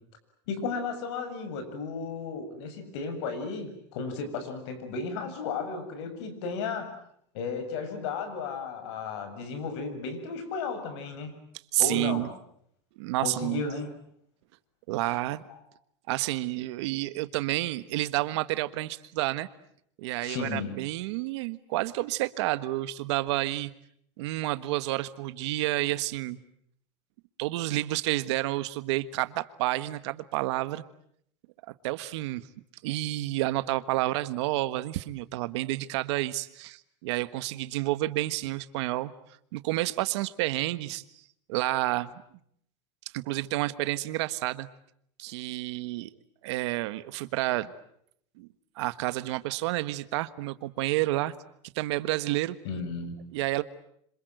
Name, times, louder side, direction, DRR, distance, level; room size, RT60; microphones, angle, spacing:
voice 1, 0.5-6.9 7.3-11.3 11.8-12.3 13.2-13.9 20.2-20.8 52.6-53.1, left 4 dB, 70° left, 8 dB, 7.2 m, -34 dB
voice 2, 11.7-12.3 13.0-13.6 14.9-15.4 16.1-19.5 20.0-23.7 24.2-26.4 27.4-30.8 31.8-32.4 32.8-39.1 39.5-41.0 41.5-42.1 43.1-44.7 45.2-46.1 46.4-47.7 48.4-48.5 48.8-51.3 51.7-52.6 53.3-53.6, right 17 dB, 75° right, 13 dB, 1.5 m, -30 dB
27.0 x 26.5 x 8.0 m, 0.69 s
supercardioid pair, 160°, 15 cm